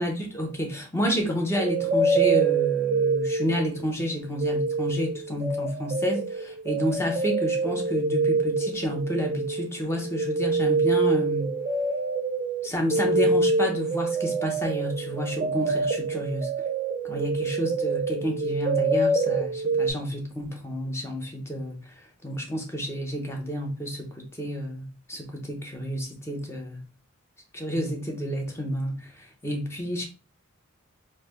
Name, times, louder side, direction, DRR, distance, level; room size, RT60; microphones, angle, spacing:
voice 1, 0.0-11.6 12.6-16.5 17.0-22.0 22.2-26.8 27.5-30.0, equal, 15° left, 0.6 m, -30 dB
sound 1, 1.5-3.9 4.2-19.9, right 3 dB, 35° right, 0.4 m, -26 dB
3.2 x 2.1 x 3.2 m
head